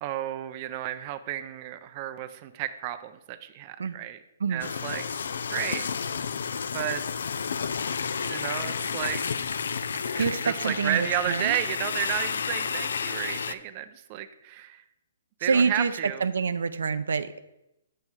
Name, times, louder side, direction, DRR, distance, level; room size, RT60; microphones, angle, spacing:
voice 1, 0.0-4.2 4.5-5.0 5.5-5.9 6.7-7.1 8.3-9.4 10.1-14.8 15.4-16.2, right 12 dB, 30° right, 10 dB, 0.4 m, -32 dB
sound 1, 4.6-13.5, left 6 dB, 75° left, 0.4 m, -31 dB
voice 2, 10.2-11.6 15.4-17.4, right 5 dB, 85° right, 12 dB, 0.5 m, -26 dB
7.7 x 5.5 x 4.6 m, 0.87 s
hypercardioid pair, 160°, 0 cm